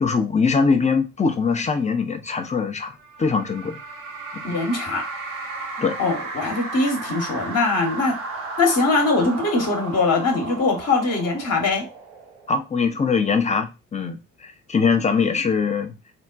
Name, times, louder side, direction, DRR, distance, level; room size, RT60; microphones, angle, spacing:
voice 1, 0.0-2.9 3.2-3.8 4.3-4.4 5.8-6.0 12.5-15.9, left 5 dB, 15° left, 6 dB, 0.6 m, -22 dB
sound 1, 3.0-12.7, right 3 dB, 75° right, 0.9 m, -34 dB
voice 2, 4.4-5.0 6.0-8.1 8.6-11.9, left 3 dB, 35° left, 3 dB, 1.1 m, -22 dB
3.7 x 2.1 x 2.5 m, 0.27 s
figure-of-eight pair, 45°, 43 cm